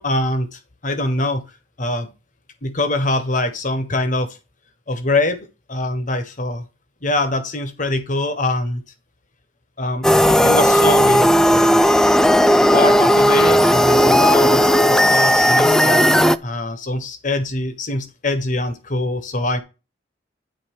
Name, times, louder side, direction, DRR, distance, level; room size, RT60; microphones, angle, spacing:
voice 1, 0.0-1.4 1.8-2.1 2.6-4.4 4.9-5.4 5.7-6.6 7.0-8.8 9.8-11.8 12.7-16.0 16.4-19.6, left 2 dB, 45° left, 9 dB, 1.3 m, -23 dB
sound 1, 10.0-16.4, equal, 5° left, 0.3 m, -14 dB
10.5 x 4.2 x 4.7 m, 0.28 s
head